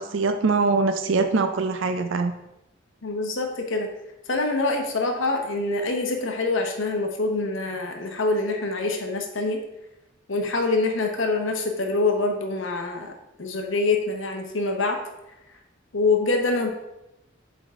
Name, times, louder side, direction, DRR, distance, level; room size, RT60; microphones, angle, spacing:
voice 1, 0.0-2.3, right 4 dB, 75° right, 8 dB, 0.5 m, -23 dB
voice 2, 3.0-3.9 4.3-9.6 10.3-13.1 13.4-15.0 15.9-16.7, left 3 dB, 75° left, 3 dB, 1.0 m, -25 dB
8.5 x 3.6 x 3.6 m, 0.91 s
head